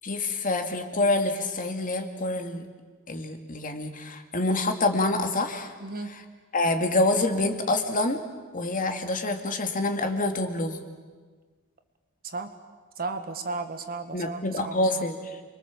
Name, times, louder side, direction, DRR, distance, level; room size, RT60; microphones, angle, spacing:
voice 1, 0.0-2.7 3.1-5.7 6.1-6.2 6.5-8.2 8.5-10.8 14.1-15.2, left 2 dB, 40° left, 5 dB, 2.2 m, -26 dB
voice 2, 5.8-6.1 12.2-12.5 13.0-15.0, right 3 dB, 45° right, 7 dB, 1.8 m, -34 dB
29.0 x 23.0 x 7.4 m, 1.5 s
head